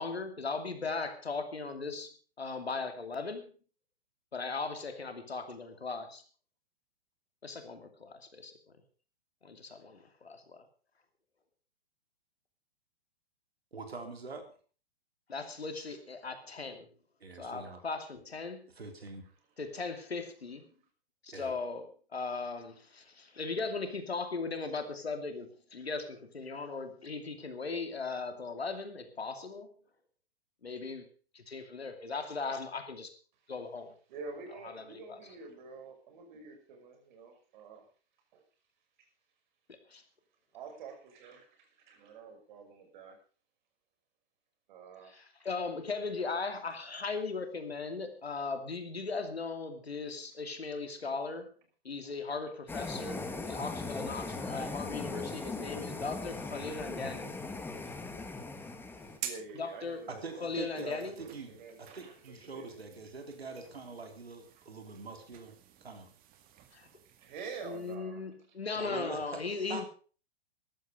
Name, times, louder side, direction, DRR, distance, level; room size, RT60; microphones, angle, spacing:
voice 1, 0.0-2.1 2.4-3.5 4.3-6.2 7.4-8.5 9.4-10.7 15.3-16.9 17.4-18.7 19.6-20.7 21.2-21.9 22.1-29.7 30.6-31.1 31.3-33.1 33.5-33.9 34.6-35.2 39.9-40.0 45.0-51.5 51.8-57.3 59.5-60.0 60.4-61.1 66.7-66.9 67.6-69.9, left 4 dB, 85° left, 7 dB, 2.7 m, -38 dB
voice 2, 13.7-14.5 17.2-17.8 18.7-19.3 21.3-21.5 60.1-65.6 65.8-66.1 68.8-69.9, right 4 dB, 85° right, 5 dB, 3.6 m, -44 dB
voice 3, 34.1-37.8 38.3-38.4 40.5-43.2 44.7-45.1 57.8-57.9 58.6-58.7 59.2-62.8 67.2-68.2, right 4 dB, 50° right, 4 dB, 5.9 m, -47 dB
sound 1, 52.7-59.2, left 3 dB, 5° left, 1.5 m, -39 dB
sound 2, 59.0-68.0, right 10 dB, 30° right, 2.1 m, -50 dB
14.5 x 11.5 x 5.1 m, 0.39 s
hypercardioid pair, 120°, 30 cm